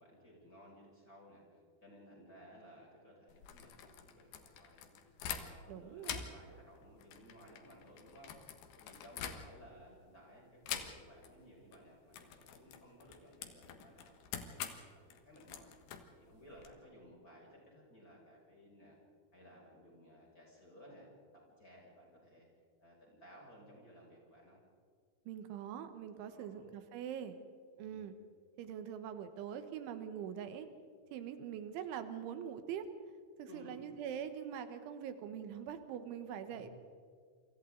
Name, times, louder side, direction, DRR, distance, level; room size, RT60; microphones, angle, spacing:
voice 1, 0.0-4.9 5.3-19.0 19.3-22.5 22.8-24.6 26.3-26.7 27.7-28.1 33.5-33.9 36.5-36.7, equal, 20° left, -3 dB, 6.6 m, -58 dB
sound 1, 3.3-5.7 6.0-9.8 10.6-11.3 11.6-11.8 12.1-16.7, left 8 dB, 65° left, 3.2 m, -46 dB
voice 2, 5.7-6.2 25.3-27.4 27.8-28.2 28.6-30.7 31.1-32.9 33.4-36.7, right 8 dB, 85° right, 9 dB, 3.7 m, -43 dB
28.5 x 25.0 x 3.9 m, 2.1 s
omnidirectional pair, 5.3 m